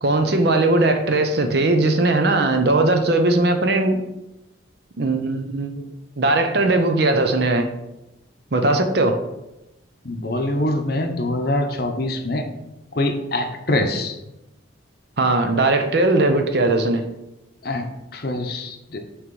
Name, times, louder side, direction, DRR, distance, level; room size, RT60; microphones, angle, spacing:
voice 1, 0.0-4.0 5.0-5.9 6.2-7.7 8.5-9.2 15.2-17.0, right 2 dB, 55° right, 6 dB, 0.7 m, -19 dB
voice 2, 10.0-12.5 12.9-14.1 17.6-17.8 18.1-19.0, left 1 dB, 50° left, 5 dB, 0.7 m, -24 dB
6.3 x 3.1 x 5.3 m, 0.93 s
head